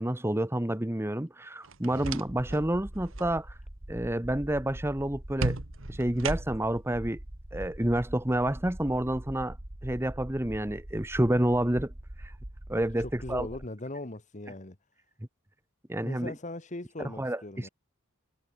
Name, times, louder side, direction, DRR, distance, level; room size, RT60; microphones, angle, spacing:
voice 1, 0.0-3.5 3.9-5.6 5.9-7.2 7.5-9.6 9.8-11.9 12.2-12.3 12.7-13.5 15.9-16.3 17.2-17.7, right 1 dB, 10° right, 1.1 m, -29 dB
sound 1, 1.6-2.6 3.0-3.3 5.4-6.8, right 3 dB, 70° right, 1.6 m, -35 dB
sound 2, 2.3-13.7, right 1 dB, 40° right, 2.0 m, -43 dB
voice 2, 13.0-14.8 16.0-17.7, left 2 dB, 35° left, 1.5 m, -39 dB
head